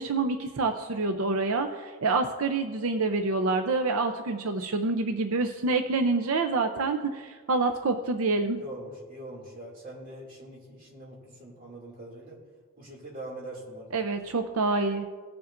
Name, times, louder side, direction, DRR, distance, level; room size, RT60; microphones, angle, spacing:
voice 1, 0.0-8.6 13.9-15.0, right 3 dB, 80° right, 6 dB, 0.6 m, -27 dB
voice 2, 8.6-12.4 12.8-13.9, right 1 dB, 40° right, -3 dB, 2.5 m, -43 dB
18.0 x 7.0 x 2.6 m, 1.5 s
head